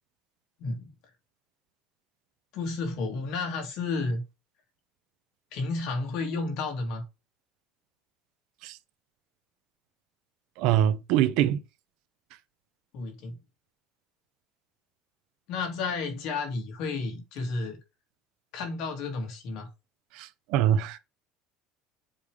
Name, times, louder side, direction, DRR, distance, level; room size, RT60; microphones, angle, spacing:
voice 1, 2.5-4.2 5.5-7.0 12.9-13.4 15.5-17.8 18.5-19.7, left 3 dB, 60° left, 2.4 m, -32 dB
voice 2, 10.6-11.6 20.2-21.0, right 11 dB, 65° right, 0.7 m, -24 dB
7.3 x 3.3 x 5.0 m
cardioid pair, 170°, 0 cm